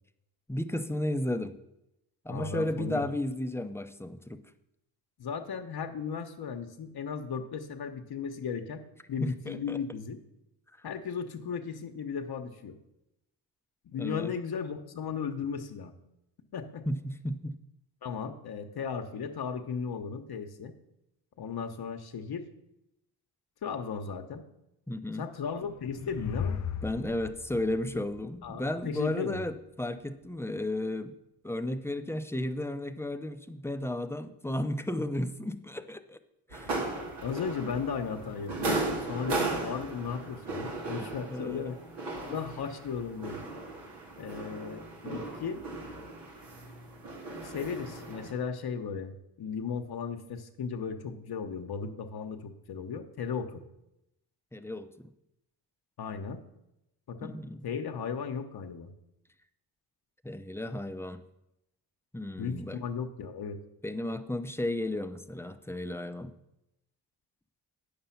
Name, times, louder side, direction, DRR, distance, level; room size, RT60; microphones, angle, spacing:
voice 1, 0.5-1.6 2.2-4.4 9.2-9.8 10.8-10.9 14.0-14.3 16.9-17.6 24.9-25.3 26.8-31.2 31.4-36.2 36.5-36.8 41.0-41.7 54.5-55.1 57.2-57.6 60.2-61.2 62.1-62.8 63.8-66.3, left 1 dB, 5° left, 9 dB, 0.6 m, -34 dB
voice 2, 2.3-3.0 5.2-8.8 9.1-10.2 10.8-12.8 13.8-15.9 16.5-16.9 18.0-20.7 21.4-22.5 23.6-24.4 25.2-26.6 28.4-29.5 37.2-41.8 42.2-43.4 44.2-45.6 47.4-53.6 56.0-56.4 57.1-57.3 57.6-58.9 62.4-63.6, left 6 dB, 65° left, 5 dB, 0.9 m, -36 dB
sound 1, 25.4-28.9, left 7 dB, 45° left, 0.7 m, -37 dB
sound 2, 36.5-48.3, right 2 dB, 85° right, 2.3 m, -36 dB
8.7 x 6.8 x 5.7 m, 0.86 s
cardioid pair, 60°, 40 cm